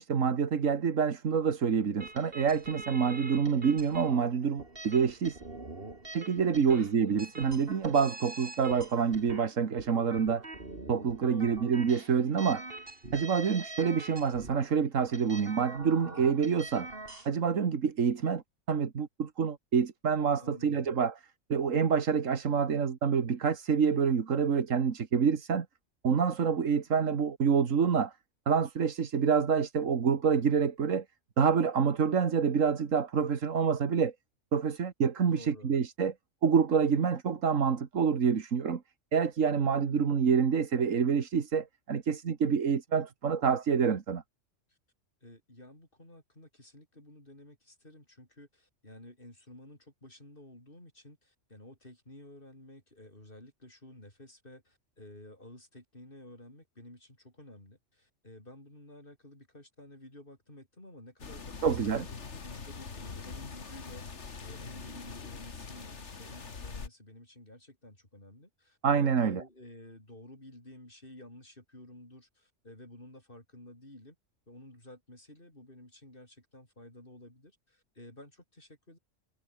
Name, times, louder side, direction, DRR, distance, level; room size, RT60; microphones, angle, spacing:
voice 1, 0.0-5.4 6.1-10.4 10.9-12.6 13.1-16.9 17.3-18.4 18.7-21.1 21.5-25.7 26.0-28.1 28.5-31.0 31.4-34.1 34.5-36.1 36.4-38.8 39.1-44.2 61.6-62.1 68.8-69.4, right 6 dB, 90° right, 1.9 m, -27 dB
sound 1, 2.0-17.3, right 2 dB, 50° right, 3.7 m, -45 dB
voice 2, 11.2-11.6 20.4-20.9 35.3-35.7 44.7-44.8 45.2-74.2 74.5-79.0, left 1 dB, 45° left, 7.0 m, -52 dB
sound 2, 61.2-66.9, left 5 dB, 65° left, 2.2 m, -43 dB
omnidirectional pair, 1.3 m